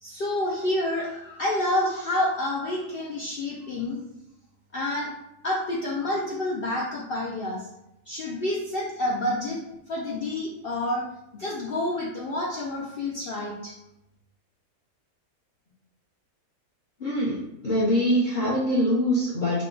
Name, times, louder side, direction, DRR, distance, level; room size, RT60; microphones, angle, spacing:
voice 1, 0.0-4.0 4.7-5.1 5.4-7.7 8.1-9.6 9.9-11.1 11.3-13.8, left 1 dB, 75° left, -3 dB, 0.5 m, -28 dB
voice 2, 17.0-19.6, equal, 40° left, -8 dB, 0.8 m, -24 dB
3.6 x 2.2 x 3.8 m, 0.87 s
omnidirectional pair, 1.6 m